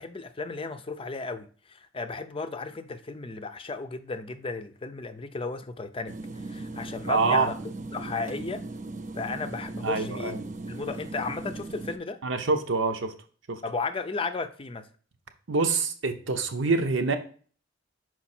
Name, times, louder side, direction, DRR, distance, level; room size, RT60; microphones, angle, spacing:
voice 1, 0.0-6.1 6.5-7.6 7.9-8.6 9.2-10.3 10.7-12.2 13.6-14.9, left 4 dB, 30° left, 0.5 m, -34 dB
sound 1, 6.1-12.0, right 2 dB, 40° right, 0.5 m, -38 dB
voice 2, 7.1-7.5 9.8-10.4 12.2-13.1 13.5-13.6 15.5-17.2, right 4 dB, 80° right, 0.9 m, -25 dB
5.9 x 4.6 x 4.3 m
head